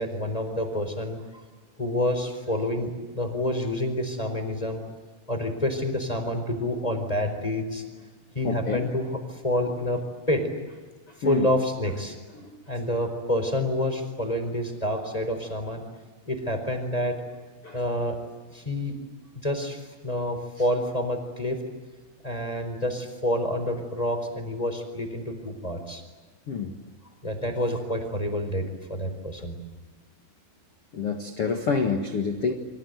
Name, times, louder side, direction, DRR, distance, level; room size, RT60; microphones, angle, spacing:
voice 1, 0.0-1.4 1.8-4.8 5.3-7.8 8.3-10.4 11.2-12.2 12.7-15.8 16.3-17.2 17.7-18.2 18.5-19.0 19.3-21.6 22.2-26.0 27.2-29.6, left 1 dB, 10° left, 5 dB, 3.8 m, -28 dB
voice 2, 8.4-8.9 11.2-11.5 12.4-12.6 17.6-17.8 26.5-26.7 30.9-32.5, left 5 dB, 85° left, 5 dB, 1.2 m, -27 dB
29.5 x 24.5 x 8.2 m, 1.3 s
omnidirectional pair, 5.6 m